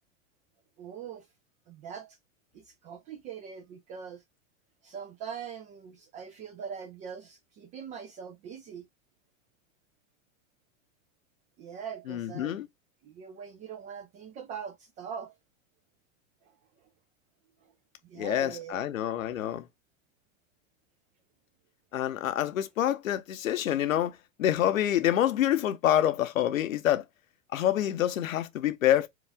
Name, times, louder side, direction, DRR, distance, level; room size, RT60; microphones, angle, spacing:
voice 1, 0.8-1.3 1.7-2.2 2.5-4.2 4.8-8.9 11.6-12.6 13.0-15.3 16.4-16.9 17.6-17.7 18.0-18.9, right 7 dB, 20° right, 0.3 m, -42 dB
voice 2, 12.1-12.7 18.1-19.7 21.9-27.0 27.5-29.1, left 11 dB, 75° left, 0.8 m, -27 dB
4.8 x 2.4 x 3.3 m
hypercardioid pair, 95°, 40 cm